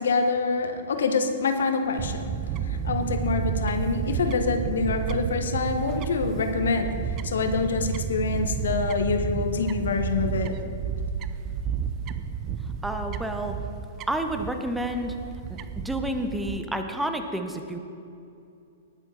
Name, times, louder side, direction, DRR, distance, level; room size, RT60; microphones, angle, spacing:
voice 1, 0.0-2.3 2.6-10.6, left 4 dB, 60° left, 7 dB, 1.1 m, -26 dB
Fowl / Bird, 2.0-16.6, right 7 dB, 30° right, 0.5 m, -31 dB
voice 2, 12.8-13.6 14.1-15.1 15.5-15.6 15.8-17.8, right 1 dB, 5° right, 6 dB, 0.8 m, -29 dB
19.0 x 6.9 x 4.3 m, 2.6 s
figure-of-eight pair, 110°, 0 cm